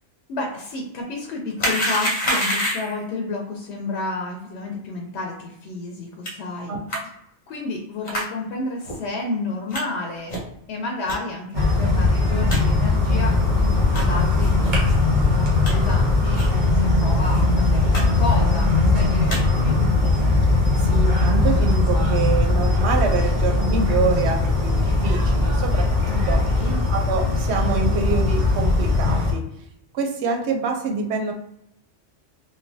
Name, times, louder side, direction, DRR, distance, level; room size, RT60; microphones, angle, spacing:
voice 1, 0.3-6.8 7.5-10.4 10.7-13.4 13.9-19.9 26.1-26.8, left 2 dB, 90° left, 0 dB, 0.9 m, -31 dB
sound 1, 1.6-3.0 6.2-6.3 6.9-7.0 8.0-8.3 8.8-9.0 9.7-9.8 10.3-10.5 11.1-11.2 11.7-11.8 12.1-12.2 12.5-12.6 13.1-13.3 13.9-14.1 14.6-14.7 15.2-15.7 16.3-16.5 16.8-16.9 17.2-17.4 17.9-18.0 18.3-18.7 19.1-19.4 20.0-20.2, equal, 45° left, 0.8 m, -27 dB
voice 2, 6.7-7.0 20.8-26.4 26.9-29.4 29.9-31.3, right 5 dB, 85° right, 4 dB, 0.9 m, -26 dB
sound 2, 11.5-29.3, left 2 dB, 50° right, 0.9 m, -20 dB
sound 3, 13.2-26.7, equal, 20° left, 1.0 m, -32 dB
3.1 x 2.1 x 2.6 m, 0.77 s
omnidirectional pair, 1.1 m